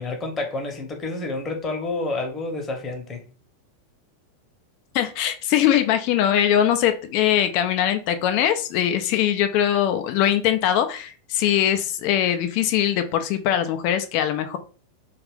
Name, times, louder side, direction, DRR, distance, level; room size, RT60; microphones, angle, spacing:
voice 1, 0.0-3.2, left 2 dB, 20° left, 0.9 m, -29 dB
voice 2, 4.9-14.6, left 10 dB, 45° left, 0.4 m, -21 dB
2.5 x 2.4 x 3.5 m
figure-of-eight pair, 90°, 0 cm